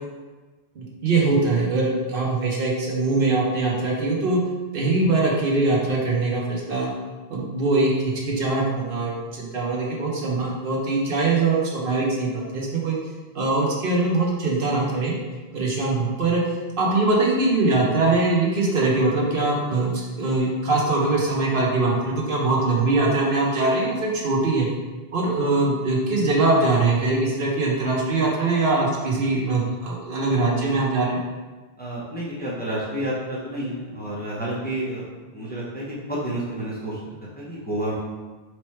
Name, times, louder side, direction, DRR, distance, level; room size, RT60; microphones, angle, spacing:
voice 1, 0.8-4.4 4.7-6.9 7.3-7.9 8.3-13.0 13.3-15.2 15.5-16.4 16.8-24.7 25.1-31.2, right 3 dB, 60° right, -3 dB, 0.9 m, -22 dB
voice 2, 31.8-35.0 35.3-37.0 37.3-37.9, right 1 dB, 10° left, -7 dB, 0.7 m, -30 dB
3.1 x 3.1 x 4.2 m, 1.3 s
omnidirectional pair, 1.1 m